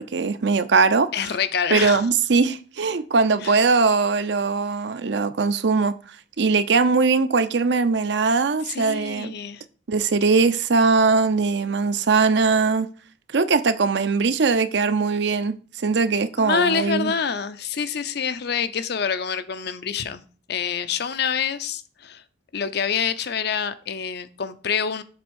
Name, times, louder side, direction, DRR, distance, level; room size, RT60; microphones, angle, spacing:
voice 1, 0.0-1.1 1.7-5.9 6.4-9.3 9.9-12.9 13.3-15.6 15.8-17.1, right 4 dB, 65° right, 0.6 m, -20 dB
voice 2, 1.1-2.1 3.4-3.6 8.6-9.6 16.4-20.2 20.5-22.2 22.5-25.0, left 6 dB, 60° left, 0.6 m, -26 dB
7.6 x 3.5 x 6.2 m
head